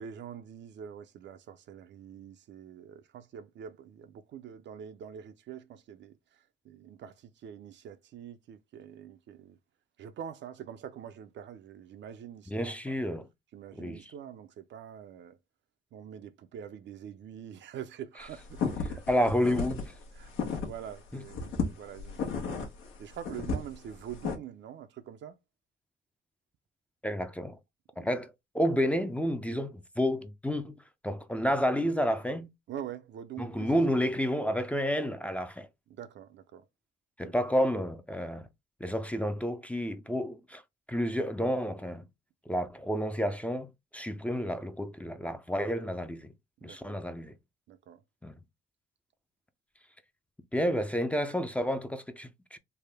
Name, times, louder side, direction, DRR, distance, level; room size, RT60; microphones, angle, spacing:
voice 1, 0.0-9.6 10.0-13.0 13.5-15.4 15.9-18.8 20.1-20.3 20.6-22.7 23.0-25.4 28.0-28.1 32.7-33.7 35.9-36.6 37.2-37.3 45.8-45.9 46.6-47.0 47.7-48.0, right 9 dB, 65° right, 0.5 m, -45 dB
voice 2, 12.5-13.3 13.8-14.0 19.1-19.9 21.1-21.2 27.0-27.6 28.0-30.8 31.0-32.5 33.4-35.7 37.2-38.5 38.8-40.6 40.9-42.0 42.5-46.3 46.6-47.4 48.2-48.3 50.5-52.6, equal, 5° left, 0.5 m, -30 dB
sound 1, 18.3-20.9 21.3-24.4, left 5 dB, 80° left, 1.0 m, -33 dB
3.4 x 2.1 x 3.4 m
cardioid pair, 90°, 20 cm